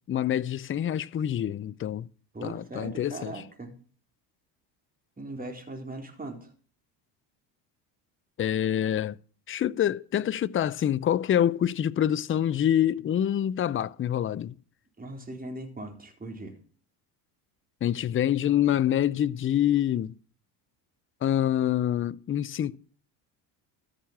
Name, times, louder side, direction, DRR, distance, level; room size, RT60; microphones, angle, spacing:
voice 1, 0.1-2.1 2.4-3.3 8.4-9.2 9.5-14.5 17.8-20.1 21.2-22.8, left 10 dB, 25° left, 0.5 m, -26 dB
voice 2, 2.3-3.7 5.2-6.5 15.0-16.6, right 2 dB, 15° right, 4.0 m, -39 dB
14.0 x 6.6 x 7.2 m
supercardioid pair, 85°, 49 cm